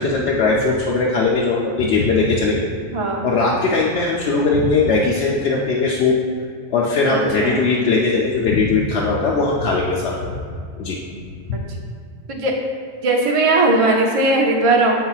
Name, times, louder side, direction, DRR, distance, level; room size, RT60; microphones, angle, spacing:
voice 1, 0.0-2.6 3.2-6.2 6.7-10.4 10.8-11.0 11.5-11.6, left 3 dB, 90° left, -4 dB, 0.9 m, -19 dB
voice 2, 2.9-3.3 7.1-7.6 11.5-11.6 12.3-12.5 13.0-15.0, right 2 dB, 45° right, 0 dB, 0.5 m, -18 dB
7.6 x 5.6 x 2.4 m, 2.1 s
omnidirectional pair, 1.1 m